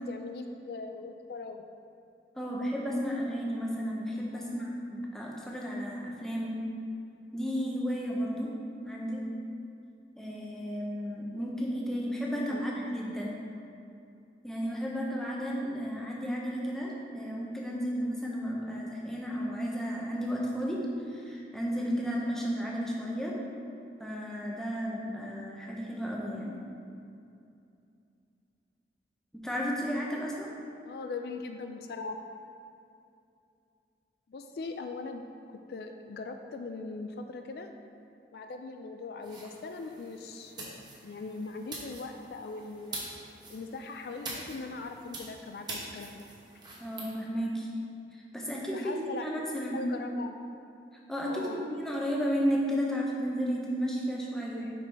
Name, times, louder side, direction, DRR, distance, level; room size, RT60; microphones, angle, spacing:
voice 1, 0.0-1.6 4.3-4.7 12.5-12.9 30.8-32.3 34.3-35.2 35.7-37.7 38.3-43.0 43.5-46.3 48.5-50.4 51.3-51.6 54.5-54.7, left 3 dB, 60° left, 5 dB, 0.3 m, -40 dB
voice 2, 2.4-6.6 7.3-8.5 8.8-9.2 10.2-13.4 14.4-20.8 21.1-23.3 24.0-26.6 29.3-30.5 46.8-47.7 48.3-49.8 51.1-54.7, equal, 5° left, -3 dB, 0.7 m, -33 dB
sound 1, 39.2-47.1, right 2 dB, 25° right, 0.9 m, -45 dB
5.2 x 5.1 x 4.6 m, 2.6 s
head